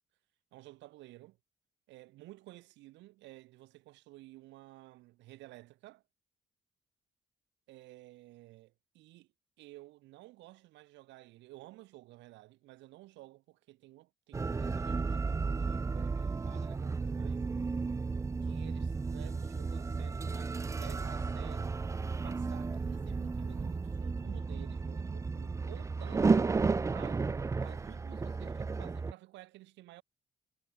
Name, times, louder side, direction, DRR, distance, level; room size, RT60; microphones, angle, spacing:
voice 1, 0.5-1.4 1.9-6.0 7.7-9.3 9.6-17.4 18.4-21.8 22.1-26.6 26.9-27.3 27.6-30.0, right 18 dB, 70° right, 1.6 m, -53 dB
sound 1, 14.3-29.1, right 4 dB, 15° right, 0.3 m, -33 dB
hypercardioid pair, 40°, 19 cm